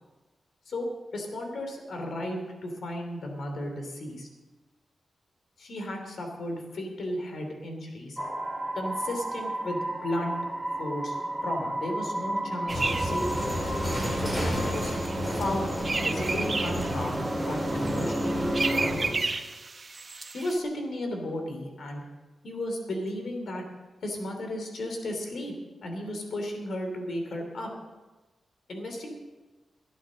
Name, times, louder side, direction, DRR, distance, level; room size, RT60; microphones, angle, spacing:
voice 1, 0.7-4.3 5.6-8.2 8.7-10.4 10.8-11.1 11.4-13.6 14.2-14.9 15.3-15.7 16.0-19.2 20.3-22.0 22.4-23.6 24.0-25.5 25.8-27.7 28.7-29.1, left 1 dB, 70° left, 3 dB, 3.0 m, -34 dB
sound 1, 8.2-19.0, right 1 dB, 5° right, 1.6 m, -33 dB
sound 2, 12.7-19.1, equal, 15° left, 5.1 m, -31 dB
sound 3, 12.7-20.6, right 3 dB, 35° right, 1.1 m, -34 dB
14.5 x 11.0 x 6.3 m, 1.2 s
wide cardioid pair, 105°, 0 cm